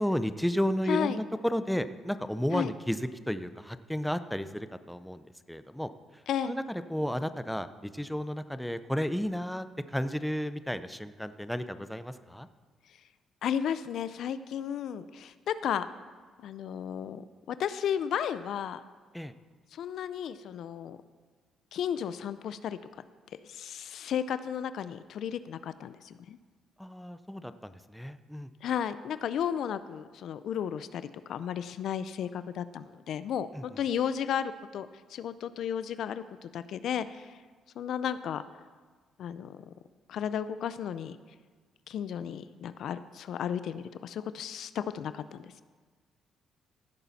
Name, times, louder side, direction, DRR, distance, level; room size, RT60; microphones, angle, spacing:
voice 1, 0.0-12.5 19.1-19.3 26.8-28.5 33.5-33.6, equal, 5° left, 11 dB, 0.5 m, -33 dB
voice 2, 0.9-1.2 2.5-2.7 6.3-6.6 13.4-15.9 16.4-18.8 19.7-21.0 21.7-22.8 23.4-26.4 28.6-37.4 37.8-38.4 39.2-39.6 40.1-41.2 41.9-45.6, left 9 dB, 70° left, 14 dB, 0.4 m, -34 dB
16.0 x 8.4 x 4.1 m, 1.5 s
cardioid pair, 90°, 0 cm